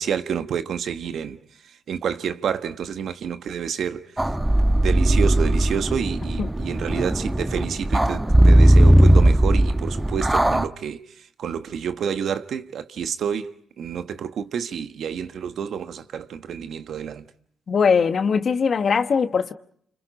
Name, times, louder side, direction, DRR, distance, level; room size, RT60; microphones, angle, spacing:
voice 1, 0.0-1.4 1.9-4.0 4.7-11.0 11.4-17.3, right 7 dB, 70° right, 1.3 m, -29 dB
sound 1, 4.2-10.7, right 1 dB, 15° right, 1.1 m, -17 dB
voice 2, 17.7-19.5, left 6 dB, 55° left, 1.3 m, -20 dB
30.0 x 27.0 x 5.1 m
supercardioid pair, 50°, 0 cm